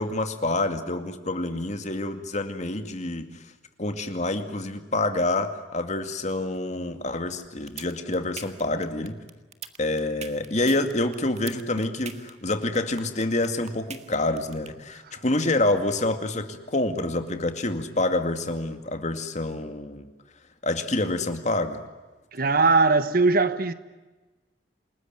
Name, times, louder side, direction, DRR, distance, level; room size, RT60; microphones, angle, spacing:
voice 1, 0.0-3.3 3.8-9.2 9.8-20.1 20.6-21.8, left 2 dB, 40° left, 2.3 m, -27 dB
sound 1, 7.4-14.7, right 6 dB, 40° right, 1.8 m, -40 dB
voice 2, 22.3-23.7, right 3 dB, 55° right, 1.4 m, -20 dB
28.5 x 20.0 x 9.2 m
head